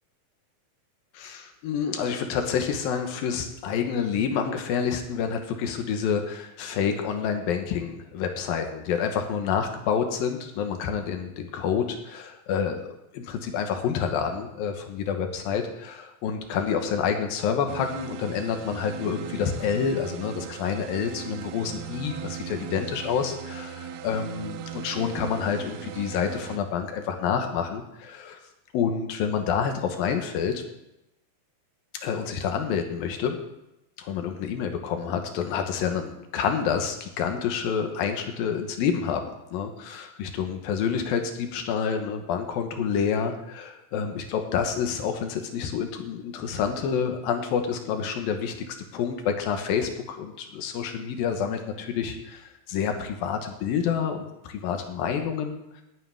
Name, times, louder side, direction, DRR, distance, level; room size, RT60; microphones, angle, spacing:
voice 1, 1.1-28.4 28.7-30.6 32.0-33.4 34.0-55.8, left 7 dB, 75° left, 5 dB, 2.9 m, -28 dB
sound 1, 17.7-26.6, right 9 dB, 85° right, 2.6 m, -38 dB
18.5 x 8.7 x 3.6 m, 0.88 s
omnidirectional pair, 4.4 m